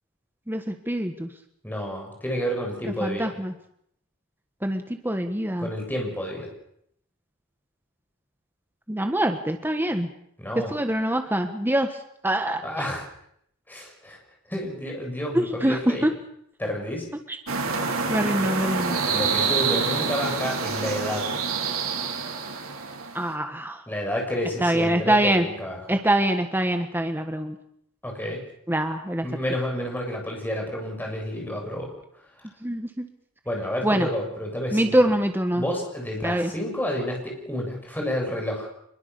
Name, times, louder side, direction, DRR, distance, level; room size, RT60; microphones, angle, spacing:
voice 1, 0.5-1.3 2.8-3.5 4.6-5.7 8.9-10.1 10.7-11.9 12.2-12.6 15.3-16.1 18.1-19.0 23.1-23.8 24.6-25.5 25.9-27.5 28.7-29.3 32.6-33.1 33.8-34.1 34.7-35.6 36.2-36.5, right 1 dB, 10° right, 6 dB, 1.5 m, -24 dB
voice 2, 1.6-3.3 5.6-6.5 10.4-10.7 12.6-13.1 13.7-14.2 14.5-16.1 16.6-17.1 19.1-21.3 23.9-26.0 28.0-28.4 29.2-31.9 32.4-32.5 33.5-35.1 35.5-38.7, equal, 10° left, 1 dB, 7.3 m, -30 dB
sound 1, 17.5-23.3, right 5 dB, 80° right, 3.7 m, -27 dB
25.0 x 22.5 x 7.0 m, 0.70 s
head